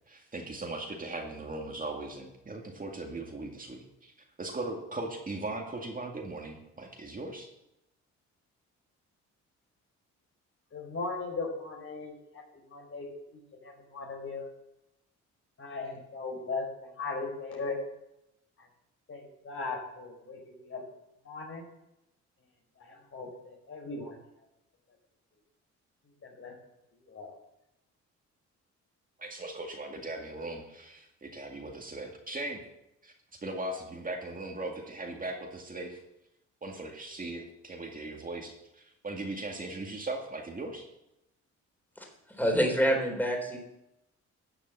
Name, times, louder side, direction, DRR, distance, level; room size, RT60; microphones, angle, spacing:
voice 1, 0.1-7.5 29.2-32.6 33.0-33.1 33.4-36.0 36.6-40.9, right 2 dB, 30° right, 1 dB, 2.1 m, -39 dB
voice 2, 10.7-13.1 13.3-14.4 15.6-17.8 18.6-18.7 19.1-20.8 21.2-21.6 22.8-24.1 26.2-26.5 27.0-27.4, left 3 dB, 45° left, 1 dB, 4.9 m, -38 dB
voice 3, 42.4-43.6, equal, 5° left, 2 dB, 3.7 m, -26 dB
12.5 x 7.2 x 7.3 m, 0.85 s
cardioid pair, 90°, 30 cm